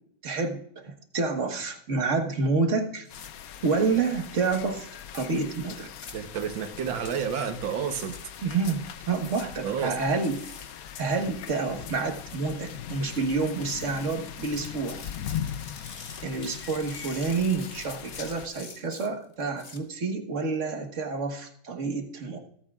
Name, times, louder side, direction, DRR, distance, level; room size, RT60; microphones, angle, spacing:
voice 1, 0.2-3.1 3.6-4.9 5.1-5.9 8.4-10.4 11.0-15.0 16.2-22.4, right 4 dB, 40° right, 4 dB, 1.6 m, -28 dB
sound 1, 3.0-3.3 5.0-5.3 6.1-6.2 7.0-7.1 8.1-8.2 9.1-9.5 10.1-10.7 12.1-12.4 13.1-19.8, left 4 dB, 35° left, 1.3 m, -47 dB
sound 2, 3.1-18.5, left 9 dB, 65° left, 1.0 m, -40 dB
voice 2, 6.1-8.2 9.6-10.0, right 7 dB, 85° right, 8 dB, 1.8 m, -30 dB
25.5 x 8.6 x 2.4 m, 0.66 s
omnidirectional pair, 2.0 m